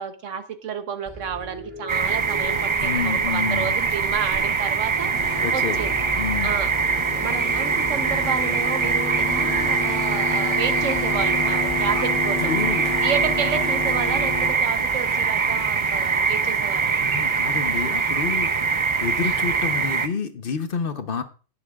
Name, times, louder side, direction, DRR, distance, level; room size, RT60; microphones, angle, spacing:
voice 1, 0.0-6.0 6.4-6.7 7.2-12.5 13.0-16.9, right 7 dB, 80° right, 9 dB, 1.3 m, -31 dB
sound 1, 1.1-11.7, left 1 dB, 10° right, 2.7 m, -41 dB
sound 2, 1.9-20.1, right 5 dB, 40° right, 0.4 m, -23 dB
voice 2, 2.8-3.7 5.4-5.8 6.2-6.5 11.9-12.0 12.4-13.0 17.0-18.5 19.0-21.2, left 6 dB, 50° left, 9 dB, 1.0 m, -28 dB
sound 3, 5.1-14.5, left 3 dB, 70° left, 1.5 m, -30 dB
18.0 x 7.0 x 2.4 m, 0.36 s
omnidirectional pair, 1.3 m